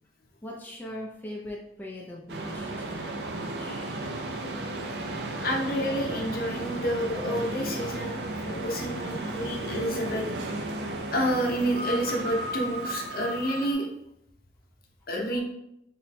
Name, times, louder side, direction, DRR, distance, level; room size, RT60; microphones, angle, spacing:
voice 1, 0.4-4.0 15.3-15.4, left 1 dB, 10° left, -3 dB, 0.4 m, -41 dB
sound 1, 2.3-13.7, right 2 dB, 70° right, 0.4 m, -34 dB
voice 2, 5.4-10.3 11.1-13.9 15.1-15.4, equal, 55° left, 0 dB, 0.6 m, -29 dB
3.0 x 2.2 x 4.1 m, 0.78 s
head